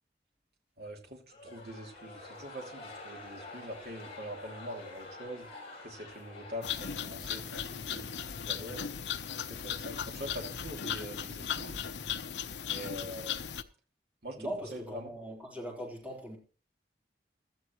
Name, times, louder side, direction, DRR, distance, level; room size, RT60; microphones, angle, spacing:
voice 1, 0.8-5.5 5.8-8.9 9.5-11.8 12.6-13.5 14.2-15.1, equal, 65° right, 2.8 m, -44 dB
sound 1, 1.3-9.7, left 2 dB, 35° left, 6.9 m, -49 dB
sound 2, 6.6-13.6, left 8 dB, 90° left, 0.8 m, -37 dB
voice 2, 14.4-16.4, equal, 10° right, 4.0 m, -40 dB
16.5 x 13.0 x 3.1 m
head